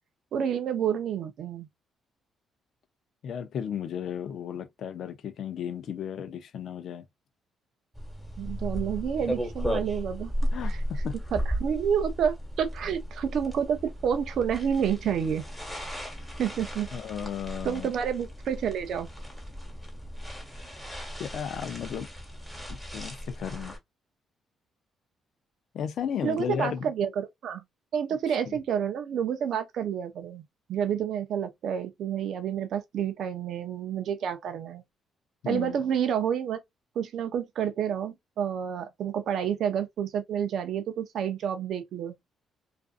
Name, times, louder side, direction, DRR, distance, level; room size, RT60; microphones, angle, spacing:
voice 1, 0.3-1.7 8.4-10.3 10.7-10.8 11.3-15.4 16.4-16.9 17.6-19.1 26.2-27.6 27.9-30.4 30.7-34.8 35.5-36.6 37.0-42.2, right 8 dB, 70° right, 0.5 m, -29 dB
voice 2, 3.2-7.1 10.5-11.1 16.9-17.9 21.2-22.1 22.5-23.8 25.7-26.8 28.3-28.6 35.4-35.8, left 8 dB, 70° left, 0.5 m, -34 dB
sound 1, 7.9-23.8, equal, ahead, 1.2 m, -35 dB
2.5 x 2.4 x 2.4 m
cardioid pair, 90°, 0 cm